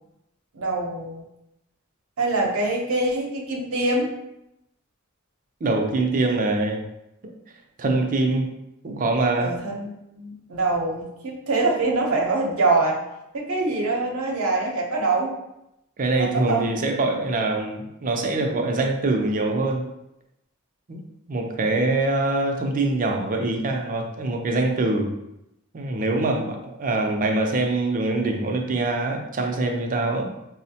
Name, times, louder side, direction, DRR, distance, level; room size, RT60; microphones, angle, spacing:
voice 1, 0.5-1.2 2.2-4.1 9.4-9.9 10.1-13.0 13.3-15.4 16.2-16.7, right 2 dB, 85° right, -1 dB, 0.7 m, -24 dB
voice 2, 5.6-6.8 7.8-8.5 8.8-9.6 16.0-19.9 20.9-25.1 25.7-30.3, right 2 dB, 40° right, 3 dB, 0.5 m, -24 dB
4.7 x 2.1 x 2.7 m, 0.85 s
head